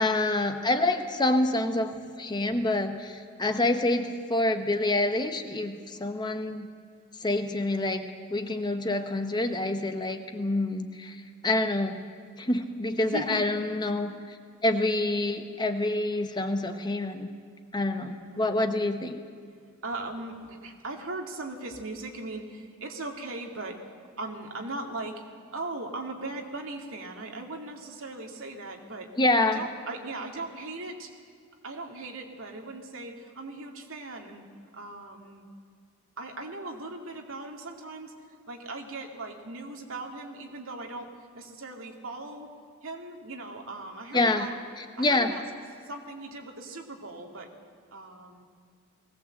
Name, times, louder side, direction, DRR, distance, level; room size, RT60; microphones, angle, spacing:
voice 1, 0.0-6.7 7.2-12.0 12.4-14.4 14.6-17.3 17.7-19.2 29.2-29.6 44.1-44.5 44.8-45.3, left 2 dB, 20° left, 7 dB, 0.9 m, -27 dB
voice 2, 13.0-13.5 17.9-18.5 19.8-23.8 24.2-25.2 25.5-29.1 29.4-31.1 31.6-34.4 34.7-35.4 36.2-38.1 38.5-42.5 42.8-44.6 44.9-45.4 45.8-47.5 47.9-48.4, right 2 dB, 70° right, 2 dB, 2.4 m, -39 dB
19.5 x 17.0 x 7.9 m, 2.2 s
head